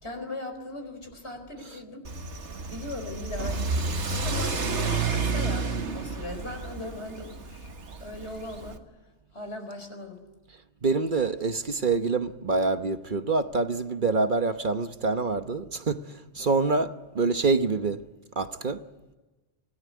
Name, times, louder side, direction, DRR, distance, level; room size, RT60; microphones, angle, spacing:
voice 1, 0.0-2.0 2.4-4.5 5.1-7.7 8.0-8.8 9.3-10.2, left 2 dB, 70° left, 4.8 m, -39 dB
Car / Accelerating revving vroom, 2.0-8.8, right 4 dB, 90° right, 1.9 m, -30 dB
voice 2, 10.8-18.0 18.4-18.8, right 3 dB, 50° right, 1.2 m, -26 dB
25.5 x 18.0 x 9.5 m
omnidirectional pair, 1.1 m